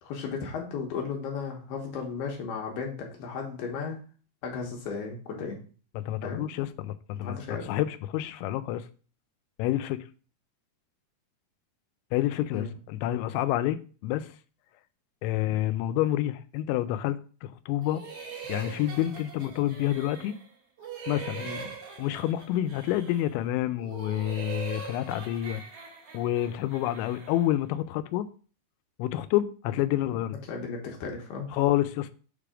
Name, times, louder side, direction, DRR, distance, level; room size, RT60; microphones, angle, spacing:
voice 1, 0.0-4.0 4.4-5.6 6.2-6.5 7.2-7.7 12.5-12.7 21.4-21.6 30.5-31.5, left 5 dB, 70° left, 2.8 m, -35 dB
voice 2, 6.0-8.9 9.6-10.1 12.1-14.3 15.2-18.0 18.5-20.4 21.1-21.5 22.0-25.6 26.1-28.3 29.0-30.4 31.5-32.1, left 13 dB, 85° left, 2.9 m, -28 dB
sound 1, 17.8-20.5 20.8-23.4 23.8-27.5, right 5 dB, 50° right, 1.8 m, -42 dB
7.5 x 3.4 x 4.9 m
omnidirectional pair, 5.3 m